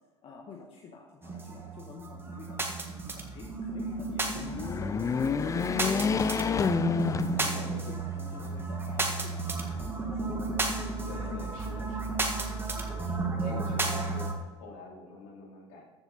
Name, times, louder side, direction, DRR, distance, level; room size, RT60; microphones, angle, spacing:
voice 1, 0.2-5.0 5.2-6.7 7.0-10.5 11.3-11.5 13.5-13.7, left 4 dB, 35° left, 0 dB, 1.6 m, -48 dB
sound 1, 1.2-14.3, right 3 dB, 15° right, 1.7 m, -33 dB
sound 2, 4.4-8.0 8.4-8.5 9.6-10.4, left 5 dB, 20° left, 0.5 m, -29 dB
voice 2, 7.4-7.8 11.1-12.3 12.8-14.3 14.6-15.8, left 2 dB, 55° left, -1 dB, 3.7 m, -46 dB
14.0 x 7.4 x 4.2 m, 1.4 s
hypercardioid pair, 85°, 15 cm